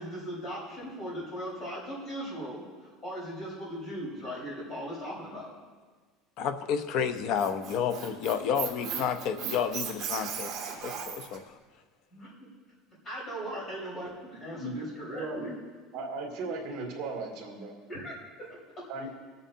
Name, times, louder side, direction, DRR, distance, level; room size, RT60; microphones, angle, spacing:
voice 1, 0.0-5.5 12.1-12.5 13.0-15.5 17.9-18.9, equal, 25° left, -5 dB, 4.7 m, -39 dB
voice 2, 6.4-10.5 10.8-11.4, left 7 dB, 50° left, 9 dB, 0.8 m, -30 dB
Squeak, 7.1-11.4, right 7 dB, 30° right, 2.6 m, -36 dB
voice 3, 15.2-15.5 15.9-17.7 18.9-19.1, right 3 dB, 50° right, -1 dB, 2.8 m, -36 dB
26.0 x 9.0 x 2.8 m, 1.5 s
cardioid pair, 170°, 0 cm